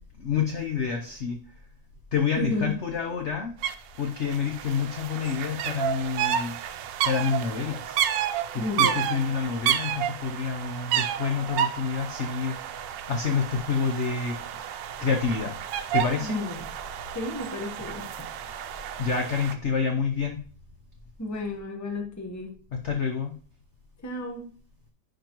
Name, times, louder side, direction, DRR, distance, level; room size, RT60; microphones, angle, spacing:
voice 1, 0.2-1.4 2.1-3.5 4.0-6.6 7.0-8.0 8.5-14.4 15.0-15.6 15.9-16.4 19.0-20.4 22.8-23.4, left 6 dB, 65° left, 4 dB, 0.7 m, -28 dB
voice 2, 2.4-2.8 8.5-9.0 16.2-16.7 17.1-18.3 21.2-22.5 24.0-24.5, left 2 dB, 15° left, 3 dB, 0.7 m, -32 dB
sound 1, 3.6-3.7 4.0-19.5, right 10 dB, 75° right, 1.2 m, -31 dB
10.0 x 5.0 x 3.0 m, 0.44 s
omnidirectional pair, 2.1 m